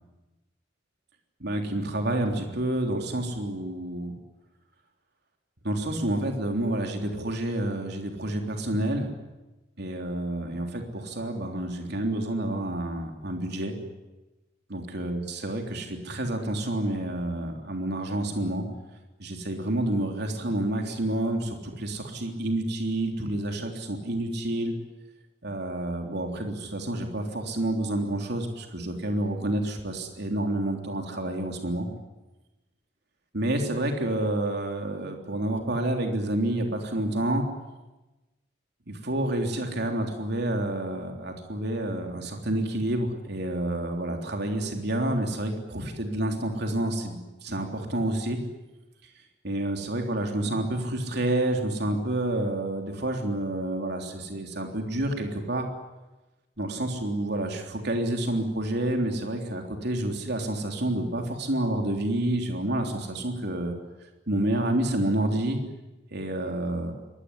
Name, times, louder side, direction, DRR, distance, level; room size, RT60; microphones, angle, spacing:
voice 1, 1.4-4.2 5.6-9.1 9.8-13.7 14.7-18.6 19.2-24.7 25.4-31.9 33.3-37.4 38.9-48.4 49.4-55.7 56.6-63.8 64.3-65.6 66.1-66.9, right 1 dB, 60° right, 3 dB, 3.5 m, -29 dB
24.5 x 20.0 x 10.0 m, 1.1 s
head